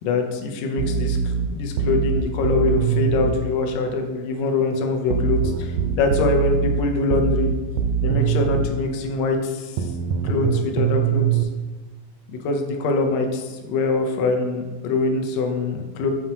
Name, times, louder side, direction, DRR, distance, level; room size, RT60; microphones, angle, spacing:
voice 1, 0.0-7.5 8.0-9.9 10.2-11.5 12.3-16.1, left 3 dB, 75° left, 3 dB, 1.7 m, -24 dB
sound 1, 0.8-3.4 5.1-8.7 9.8-11.4, right 7 dB, 85° right, 2.1 m, -22 dB
7.5 x 4.5 x 2.9 m, 1.2 s
omnidirectional pair, 3.6 m